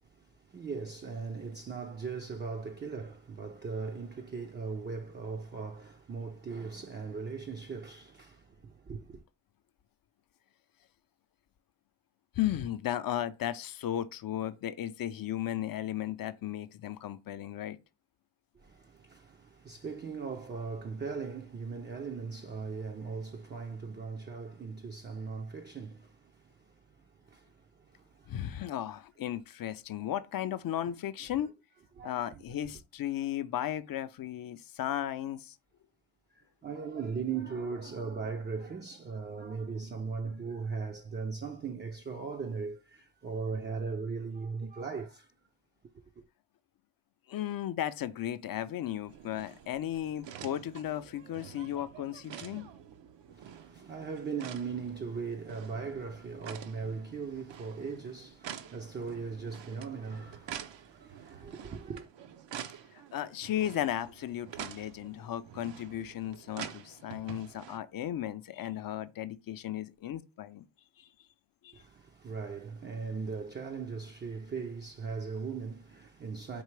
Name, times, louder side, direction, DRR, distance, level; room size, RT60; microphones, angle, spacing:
voice 1, 0.0-9.2 18.5-28.4 30.9-31.0 31.2-31.5 32.0-32.7 36.3-45.3 46.2-46.3 53.3-62.1 71.7-76.6, right 5 dB, 25° right, 0.4 m, -39 dB
voice 2, 12.4-17.8 28.3-31.5 32.0-35.6 47.3-52.7 63.1-70.6 71.0-71.1 71.6-71.7, left 11 dB, 50° left, 0.5 m, -35 dB
sound 1, 49.1-67.8, right 9 dB, 65° right, 0.6 m, -47 dB
4.6 x 2.9 x 3.2 m
cardioid pair, 85°, 47 cm